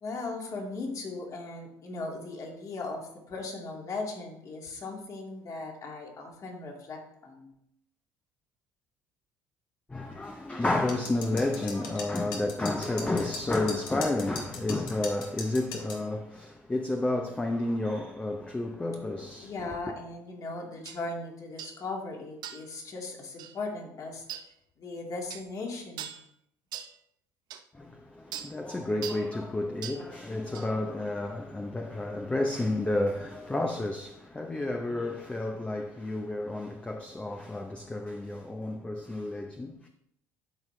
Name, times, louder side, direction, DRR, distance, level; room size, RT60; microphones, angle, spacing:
voice 1, 0.0-7.5 19.4-24.2 24.8-26.1, left 3 dB, 45° left, 2.1 m, -38 dB
voice 2, 9.9-19.8 27.7-39.9, left 2 dB, 15° left, 0.7 m, -31 dB
sound 1, 10.9-16.0, left 4 dB, 70° left, 1.6 m, -40 dB
sound 2, 20.9-21.0 21.6-21.8 22.4-22.7 23.4-23.6 24.3-24.5 25.3-25.5 26.0-26.2 26.7-26.9 27.5-27.6 28.3-28.5 29.0-29.3 29.8-30.0 30.5-30.7, right 9 dB, 60° right, 0.7 m, -40 dB
12.0 x 4.5 x 3.3 m
supercardioid pair, 90°, 8 cm